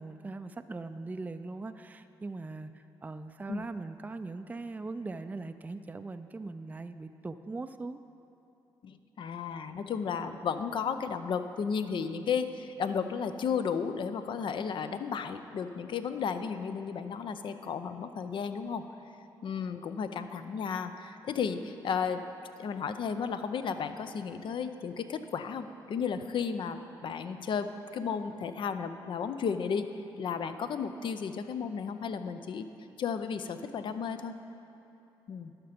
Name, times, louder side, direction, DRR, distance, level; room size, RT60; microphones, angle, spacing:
voice 1, 0.0-8.0, right 3 dB, 15° right, 10 dB, 0.4 m, -40 dB
voice 2, 8.8-18.8 19.4-22.3 22.6-29.9 30.2-32.7 33.0-34.3 35.3-35.5, left 6 dB, 60° left, 10 dB, 0.5 m, -33 dB
12.0 x 5.8 x 5.1 m, 2.9 s
supercardioid pair, 55°, 10 cm